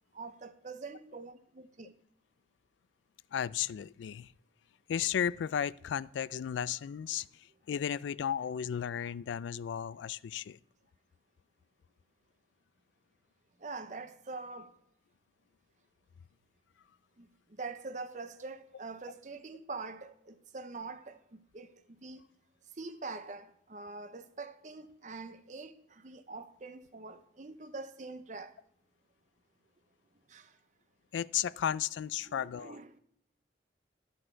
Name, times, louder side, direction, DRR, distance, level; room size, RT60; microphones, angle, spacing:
voice 1, 0.1-1.9 13.6-14.8 17.2-21.7 22.0-22.2 22.8-28.5 30.3-30.5 32.2-33.0, right 3 dB, 40° right, 0.7 m, -44 dB
voice 2, 3.3-4.3 4.9-10.6 31.1-32.8, left 9 dB, 85° left, 0.3 m, -34 dB
13.0 x 6.3 x 4.5 m
head